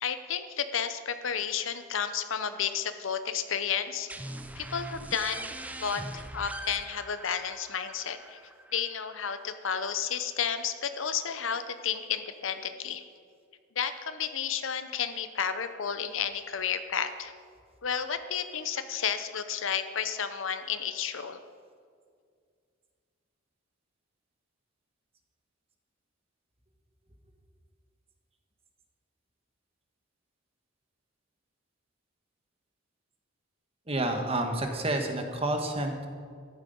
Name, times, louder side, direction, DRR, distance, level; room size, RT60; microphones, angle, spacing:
voice 1, 0.0-4.1 4.6-5.5 5.8-8.4 8.7-13.0 13.8-17.3 17.8-21.4, left 7 dB, 65° left, 10 dB, 0.7 m, -32 dB
sound 1, 4.1-9.5, right 1 dB, 5° right, 0.4 m, -42 dB
voice 2, 33.9-36.1, right 1 dB, 30° right, 4 dB, 1.3 m, -29 dB
13.5 x 11.5 x 5.4 m, 2.1 s
head